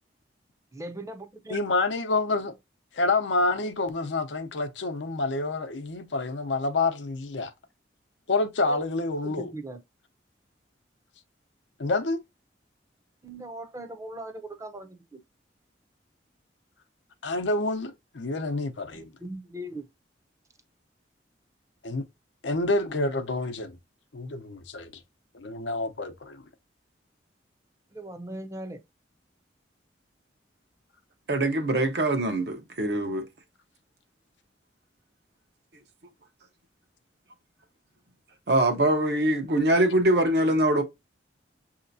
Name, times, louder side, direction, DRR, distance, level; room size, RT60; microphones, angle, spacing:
voice 1, 0.7-1.6 8.7-8.8 9.2-9.8 13.2-15.2 18.9-19.9 27.9-28.8, right 1 dB, 15° right, 0.6 m, -39 dB
voice 2, 1.5-2.5 2.9-7.5 8.3-9.5 11.8-12.2 17.2-19.1 21.8-22.0 22.4-23.8 24.1-24.9 25.3-26.4, left 3 dB, 80° left, 0.7 m, -28 dB
voice 3, 31.3-33.3 38.5-40.8, right 1 dB, 60° right, 0.9 m, -23 dB
6.6 x 2.8 x 2.6 m
head